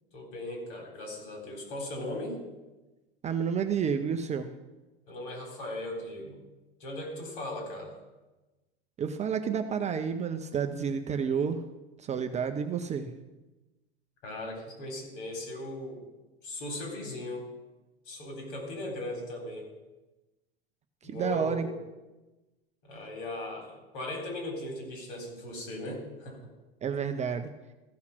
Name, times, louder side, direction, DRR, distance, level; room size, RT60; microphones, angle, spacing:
voice 1, 0.1-2.4 5.1-6.4 6.8-7.9 14.2-16.0 16.4-17.5 18.1-19.7 21.0-21.8 22.8-26.5, left 1 dB, 55° left, 1 dB, 3.8 m, -38 dB
voice 2, 3.2-4.5 9.0-11.6 12.0-13.1 21.0-21.7 26.8-27.5, right 7 dB, 20° right, 7 dB, 0.6 m, -30 dB
14.5 x 5.7 x 6.0 m, 1.1 s
figure-of-eight pair, 80°, 31 cm